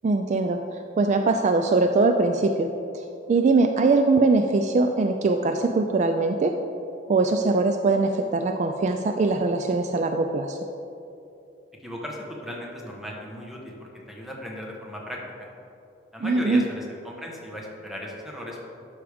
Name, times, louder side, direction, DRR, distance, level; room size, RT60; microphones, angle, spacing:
voice 1, 0.0-2.7 2.9-6.5 7.1-10.6 16.2-16.6, right 3 dB, 40° right, 5 dB, 0.3 m, -22 dB
voice 2, 11.8-15.2 16.1-18.6, equal, ahead, -2 dB, 1.1 m, -37 dB
11.5 x 5.0 x 3.5 m, 2.8 s
head